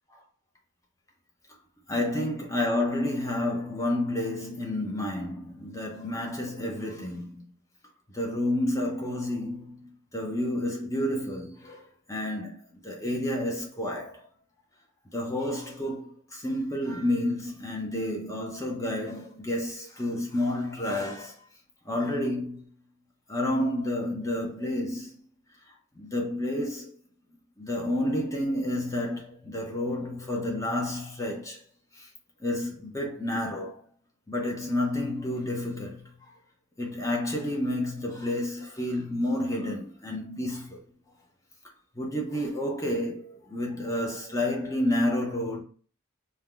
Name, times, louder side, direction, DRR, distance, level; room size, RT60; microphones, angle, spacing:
voice 1, 1.9-7.4 8.1-14.2 15.1-21.4 21.8-22.7 23.3-25.1 26.0-26.9 27.6-31.6 31.9-32.1 32.4-33.8 34.3-36.1 36.8-40.8 41.9-45.6, left 1 dB, 15° left, 0.7 m, -30 dB
4.3 x 2.3 x 3.8 m
head